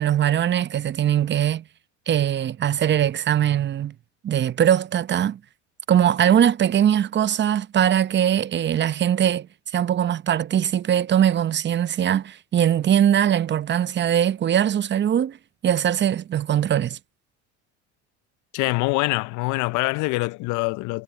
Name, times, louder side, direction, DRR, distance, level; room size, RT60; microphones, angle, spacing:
voice 1, 0.0-1.6 2.1-3.9 4.2-5.4 5.9-9.5 9.7-15.4 15.6-17.0, right 10 dB, 35° right, 0.8 m, -21 dB
voice 2, 18.5-21.0, left 24 dB, 65° left, 0.6 m, -24 dB
supercardioid pair, 85°, 33 cm